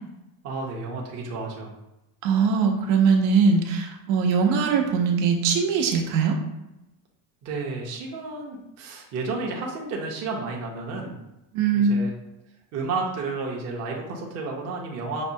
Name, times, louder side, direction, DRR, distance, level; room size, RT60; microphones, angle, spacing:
voice 1, 0.4-1.7 7.4-11.2 11.7-12.1 12.7-15.2, right 3 dB, 35° right, -1 dB, 0.6 m, -31 dB
voice 2, 2.2-6.3 11.5-12.1, right 5 dB, 75° right, 2 dB, 0.8 m, -21 dB
5.9 x 2.2 x 2.7 m, 0.93 s
cardioid pair, 170°, 48 cm